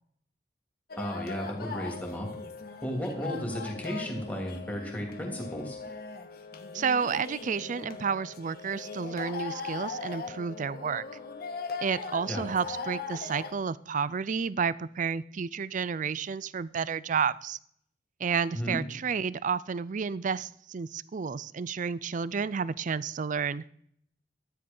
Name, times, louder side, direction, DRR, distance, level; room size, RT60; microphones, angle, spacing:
sound 1, 0.9-13.5, left 4 dB, 60° left, 1.5 m, -39 dB
voice 1, 1.0-2.3 2.8-5.8 12.3-12.5 18.5-18.8, equal, 10° left, 1 dB, 2.9 m, -34 dB
voice 2, 6.7-11.0 11.8-17.6 18.2-23.6, right 6 dB, 45° right, 19 dB, 0.4 m, -31 dB
13.0 x 10.0 x 5.4 m, 0.67 s
head